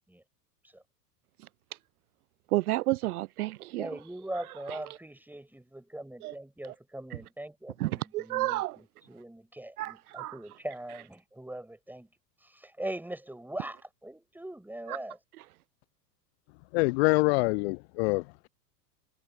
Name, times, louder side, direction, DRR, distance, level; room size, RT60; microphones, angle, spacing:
voice 1, 2.5-3.9 4.7-4.8 6.2-6.3 7.8-8.8 9.8-10.3, right 17 dB, 65° right, 0.6 m, -30 dB
voice 2, 3.8-12.1 12.4-15.2, right 1 dB, 5° right, 7.0 m, -41 dB
voice 3, 16.7-18.2, left 29 dB, 45° left, 0.5 m, -25 dB
figure-of-eight pair, 85°, 49 cm